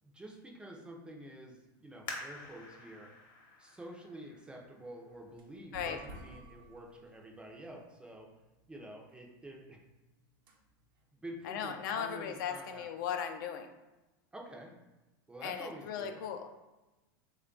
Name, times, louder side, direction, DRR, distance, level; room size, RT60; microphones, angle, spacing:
voice 1, 0.0-3.1 3.6-8.3 8.7-9.8 11.1-12.9 14.3-14.7 15.3-16.2, right 1 dB, 10° right, 0 dB, 0.4 m, -48 dB
sound 1, 2.1-5.4 6.0-6.1 6.8-7.1 7.5-7.6, left 3 dB, 40° left, 0.8 m, -48 dB
sound 2, 5.1-12.6, right 2 dB, 80° right, 0.7 m, -56 dB
voice 2, 11.4-13.7 15.4-16.5, left 8 dB, 65° left, 6 dB, 0.4 m, -37 dB
3.3 x 2.3 x 3.7 m, 1.1 s
supercardioid pair, 145°, 11 cm